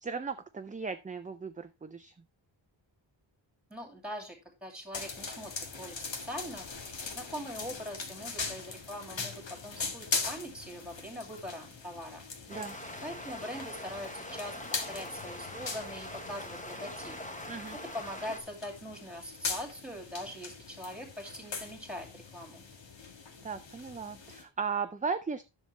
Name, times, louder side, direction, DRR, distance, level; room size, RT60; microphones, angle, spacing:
voice 1, 0.0-2.1 12.5-12.8 17.5-17.8 23.4-25.4, right 5 dB, 20° right, 8 dB, 0.4 m, -36 dB
voice 2, 3.7-4.4 4.6-6.0 6.2-6.7 7.0-12.3 13.0-14.6 14.9-17.1 17.7-22.7, equal, ahead, 3 dB, 2.7 m, -42 dB
sound 1, 4.9-24.4, left 4 dB, 70° left, 1.7 m, -41 dB
sound 2, 12.5-18.4, left 1 dB, 15° left, 1.2 m, -43 dB
10.5 x 6.7 x 3.2 m, 0.27 s
wide cardioid pair, 145°, 46 cm